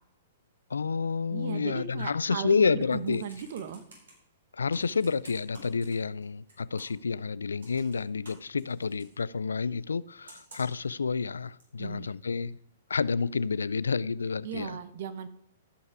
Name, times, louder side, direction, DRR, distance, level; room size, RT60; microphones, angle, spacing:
voice 1, 0.7-3.2 4.5-12.6 12.9-14.8, left 5 dB, 85° left, 0.3 m, -29 dB
voice 2, 1.3-3.8 11.8-12.1 14.4-15.3, right 8 dB, 60° right, 0.9 m, -37 dB
Computer keyboard, 2.9-4.1 4.7-6.2 6.5-7.1 7.6-9.1 10.3-10.9 11.6-11.7, right 1 dB, 75° right, 4.3 m, -51 dB
14.0 x 5.6 x 4.8 m
hypercardioid pair, 120°, 0 cm